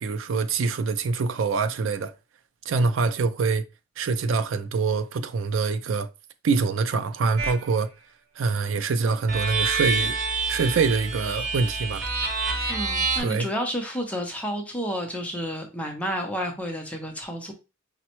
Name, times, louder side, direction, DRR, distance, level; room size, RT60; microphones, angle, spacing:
voice 1, 0.0-2.1 2.7-3.6 4.0-6.1 6.4-7.9 8.4-10.1 10.5-12.0 13.2-13.5, right 4 dB, 70° right, 0.4 m, -25 dB
sound 1, 7.4-7.7 9.3-13.2, right 4 dB, 55° right, 1.1 m, -27 dB
voice 2, 12.7-17.5, equal, 5° left, 0.6 m, -30 dB
5.1 x 2.1 x 2.9 m
head